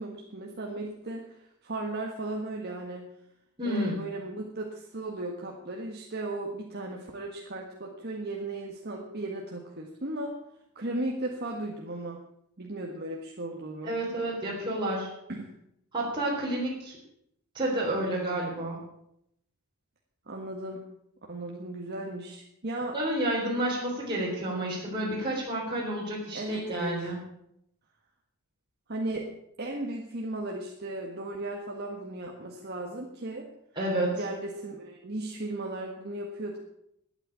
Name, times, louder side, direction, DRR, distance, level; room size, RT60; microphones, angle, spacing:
voice 1, 0.0-1.3 1.6-3.1 3.6-10.4 10.8-12.2 12.6-13.9 15.3-15.5 20.3-20.9 21.3-23.0 26.3-27.1 28.9-29.3 29.6-33.5 34.1-36.6, right 2 dB, 45° right, 0 dB, 1.6 m, -36 dB
voice 2, 3.6-4.0 13.8-15.1 15.9-17.0 17.5-18.8 22.9-27.2 33.8-34.1, right 1 dB, 20° right, -6 dB, 3.9 m, -30 dB
12.0 x 9.1 x 8.8 m, 0.77 s
head